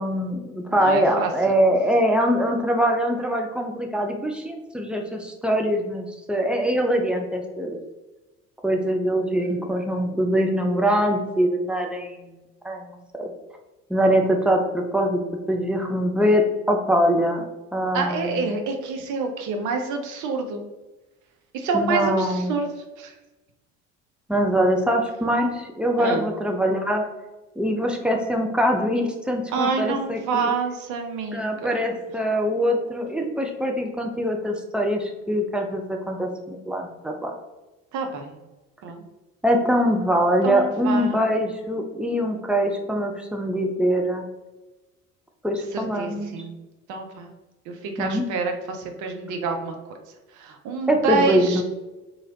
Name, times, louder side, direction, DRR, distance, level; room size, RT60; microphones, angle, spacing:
voice 1, 0.0-7.8 8.6-12.2 12.6-12.9 13.2-13.3 13.9-15.2 15.5-17.5 17.7-18.4 21.7-22.5 24.3-27.0 27.6-30.5 31.3-37.3 39.4-44.2 45.4-46.3 48.0-48.3 50.9-51.6, equal, 5° right, 2 dB, 0.5 m, -23 dB
voice 2, 0.7-1.6 17.9-20.7 21.5-23.1 26.0-26.3 29.5-31.8 37.9-38.3 38.8-39.0 40.4-41.3 45.7-46.6 46.9-47.3 47.7-50.0 50.3-51.6, right 4 dB, 50° right, 4 dB, 0.7 m, -27 dB
3.8 x 3.1 x 2.8 m, 1.1 s
figure-of-eight pair, 55°, 40 cm